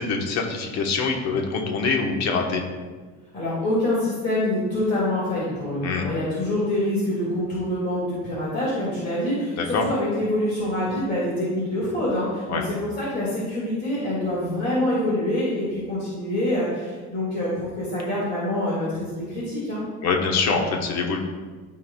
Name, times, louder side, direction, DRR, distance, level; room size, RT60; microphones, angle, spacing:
voice 1, 0.0-2.6 5.8-6.1 9.6-9.8 12.5-12.6 20.0-21.2, left 4 dB, 60° left, 1 dB, 1.2 m, -24 dB
voice 2, 3.3-19.8, left 1 dB, 35° left, -8 dB, 2.1 m, -26 dB
13.5 x 4.6 x 2.3 m, 1.4 s
cardioid pair, 170°, 30 cm